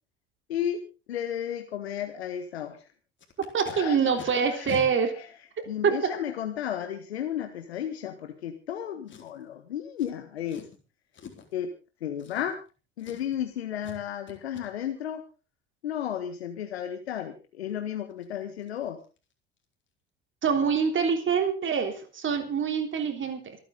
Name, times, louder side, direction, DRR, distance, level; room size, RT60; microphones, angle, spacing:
voice 1, 0.5-2.9 3.5-5.3 5.7-10.7 11.5-11.7 12.0-12.6 13.0-15.2 15.8-19.0, left 10 dB, 85° left, 7 dB, 1.6 m, -33 dB
Packing tape duct tape, 3.2-3.8 4.2-4.3 4.7-4.9 5.6-5.7 9.1-9.5 10.0-10.1 10.5-10.8 11.1-11.5 12.2-12.7 13.0-13.4 13.8-14.0 14.3-14.6 17.7-17.8 18.1-18.3 18.6-18.8 19.0-19.3 19.6-19.7, left 7 dB, 40° left, 4.3 m, -44 dB
voice 2, 3.5-5.1 5.8-6.1 20.4-23.6, right 6 dB, 40° right, 7 dB, 3.5 m, -25 dB
27.0 x 9.6 x 3.8 m, 0.33 s
hypercardioid pair, 65°, 31 cm